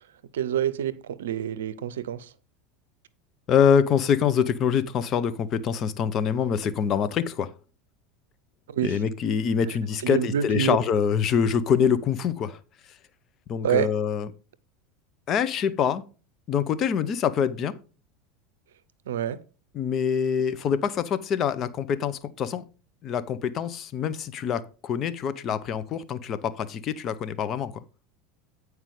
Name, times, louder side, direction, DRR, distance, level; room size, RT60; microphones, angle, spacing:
voice 1, 0.3-2.3 8.7-9.0 10.0-10.8 13.6-13.9 19.1-19.4, right 9 dB, 75° right, 0.6 m, -27 dB
voice 2, 3.5-7.5 8.8-12.6 13.5-14.3 15.3-16.0 16.5-17.8 19.7-22.7 23.0-27.8, left 7 dB, 40° left, 0.8 m, -25 dB
9.1 x 4.8 x 4.9 m
hypercardioid pair, 80°, 0 cm